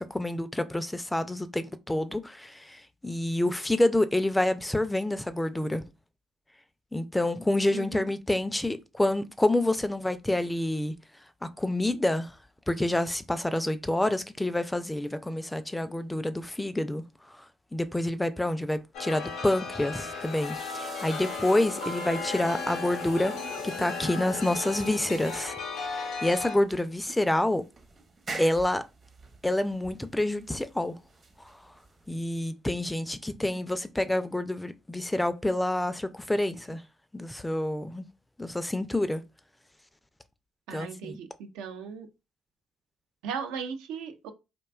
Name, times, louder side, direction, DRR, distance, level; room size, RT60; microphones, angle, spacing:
voice 1, 0.0-5.8 6.9-11.0 11.4-12.4 12.7-17.4 17.7-23.3 23.6-25.5 26.2-27.6 28.4-28.8 29.4-31.0 31.4-31.5 32.1-36.8 37.1-38.0 38.4-39.2 40.7-41.2, left 1 dB, 10° left, 0.3 m, -28 dB
voice 2, 7.7-8.1 40.7-42.1 43.2-44.3, right 6 dB, 85° right, 0.3 m, -37 dB
Chime, 18.9-26.6, left 4 dB, 80° left, 0.5 m, -35 dB
sound 1, 19.9-32.3, right 3 dB, 45° right, 0.7 m, -45 dB
2.5 x 2.2 x 2.3 m
supercardioid pair, 55°, 0 cm